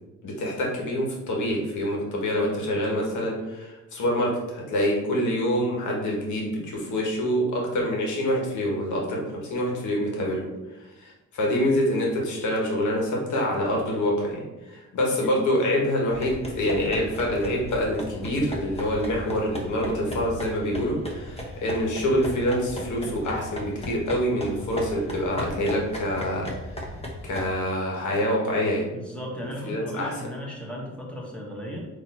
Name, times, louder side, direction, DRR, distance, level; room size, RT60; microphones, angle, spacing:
voice 1, 0.2-10.5 11.0-26.4 27.2-28.9 29.7-30.1, equal, 75° left, -1 dB, 1.5 m, -26 dB
sound 1, 16.1-27.5, left 1 dB, 20° left, 1.1 m, -36 dB
voice 2, 28.9-31.9, equal, 5° left, -3 dB, 1.5 m, -36 dB
4.1 x 3.0 x 4.3 m, 1.0 s
cardioid pair, 90°, 30 cm